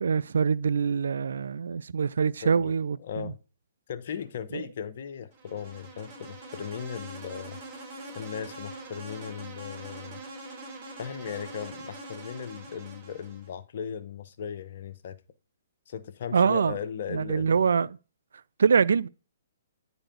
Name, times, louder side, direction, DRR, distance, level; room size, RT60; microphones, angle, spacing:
voice 1, 0.0-3.3 4.5-4.6 16.3-16.7 17.1-17.9 18.6-19.1, right 6 dB, 75° right, 0.4 m, -24 dB
voice 2, 2.4-2.8 3.0-3.4 3.9-7.6 8.1-10.2 11.0-15.2 15.9-17.6, left 8 dB, 55° left, 0.9 m, -37 dB
Insect, 5.3-13.5, right 2 dB, 35° right, 4.4 m, -43 dB
9.9 x 4.1 x 5.2 m
hypercardioid pair, 135°, 0 cm